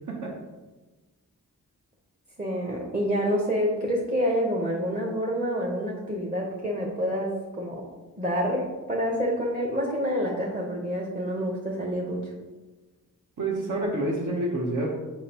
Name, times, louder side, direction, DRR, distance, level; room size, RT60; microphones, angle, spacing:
voice 1, 2.4-7.8 8.2-12.3, equal, 25° right, -1 dB, 0.9 m, -28 dB
voice 2, 13.4-15.0, right 2 dB, 60° right, -4 dB, 1.0 m, -28 dB
7.4 x 5.1 x 2.9 m, 1.2 s
wide cardioid pair, 140°, 34 cm